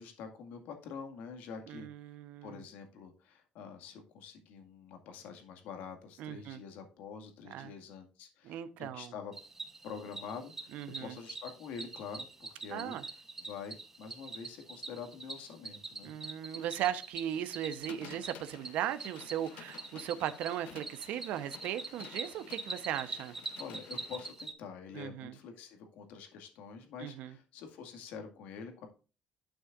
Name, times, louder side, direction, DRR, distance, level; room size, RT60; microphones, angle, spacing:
voice 1, 0.0-1.9 2.4-9.3 9.8-10.7 11.0-13.0 13.4-16.1 23.6-28.9, left 6 dB, 85° left, 5 dB, 2.0 m, -46 dB
voice 2, 1.7-2.6 6.2-6.6 7.5-7.7 8.4-9.1 10.7-11.2 12.7-13.0 16.0-23.3 24.9-25.3 27.0-27.3, right 11 dB, 75° right, 10 dB, 0.9 m, -37 dB
Cricket, 9.3-24.5, right 3 dB, 15° right, 1.0 m, -45 dB
sound 1, 17.9-24.3, left 11 dB, 65° left, 0.8 m, -53 dB
11.0 x 6.3 x 2.5 m, 0.33 s
cardioid pair, 155°, 3 cm